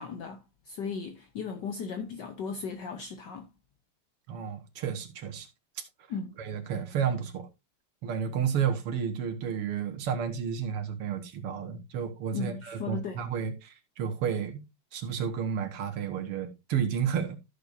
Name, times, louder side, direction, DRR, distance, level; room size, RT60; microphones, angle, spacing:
voice 1, 0.0-3.5 6.1-6.4 12.3-13.2, left 5 dB, 60° left, 1.4 m, -37 dB
voice 2, 4.3-5.5 5.8-5.9 6.4-7.5 8.0-14.6 14.9-17.4, right 7 dB, 90° right, 2.4 m, -31 dB
13.5 x 6.6 x 2.6 m
omnidirectional pair, 2.4 m